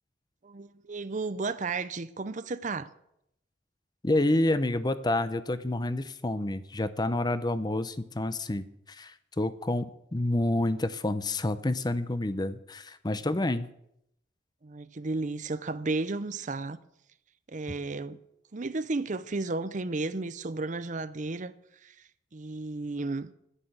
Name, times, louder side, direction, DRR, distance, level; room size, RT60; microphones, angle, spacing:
voice 1, 0.4-2.9 14.6-16.8 17.5-18.2 18.5-23.3, right 3 dB, 40° right, 0.6 m, -33 dB
voice 2, 4.0-9.9 10.1-13.7, left 1 dB, 20° left, 0.6 m, -28 dB
11.0 x 9.9 x 8.0 m
head